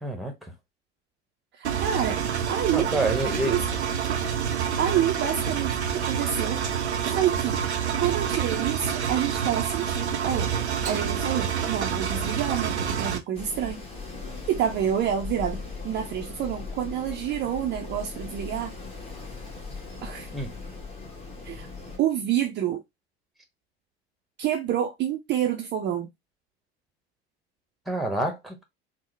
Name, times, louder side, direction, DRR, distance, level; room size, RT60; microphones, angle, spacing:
voice 1, 0.0-0.5 2.7-3.6 20.3-20.5 27.9-28.6, right 2 dB, ahead, 1.0 m, -28 dB
voice 2, 1.5-2.2 2.5-2.9 3.5-3.6 4.8-6.6 7.0-7.6 8.0-10.5 10.9-13.8 14.5-18.8 20.0-20.3 21.4-21.7 22.0-22.8 24.4-26.1, right 10 dB, 35° right, 0.5 m, -28 dB
Engine, 1.6-13.2, right 7 dB, 90° right, 0.5 m, -27 dB
Wind, 13.3-22.0, left 4 dB, 20° left, 1.2 m, -38 dB
3.5 x 2.1 x 3.2 m
figure-of-eight pair, 70°, 33 cm